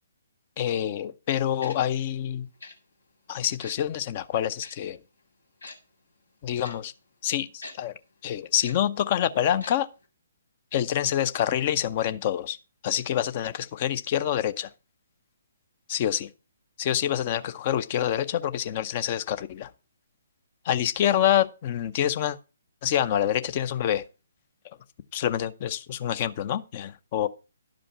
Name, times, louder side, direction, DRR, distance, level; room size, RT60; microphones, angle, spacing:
voice 1, 0.6-2.5 3.3-5.0 6.4-6.9 7.2-7.9 8.2-9.9 10.7-12.6 12.8-14.7 15.9-16.3 16.8-19.7 20.6-22.4 22.8-24.0 25.1-27.3, left 10 dB, 35° left, 0.6 m, -26 dB
Tick-tock, 1.6-1.8 2.6-2.7 3.6-3.8 4.6-4.7 5.6-5.8 6.6-6.7 7.6-7.7 8.6-8.7 9.6-9.7 10.0-10.1, left 3 dB, 70° left, 2.3 m, -41 dB
11.5 x 5.1 x 5.6 m
figure-of-eight pair, 130°, 0 cm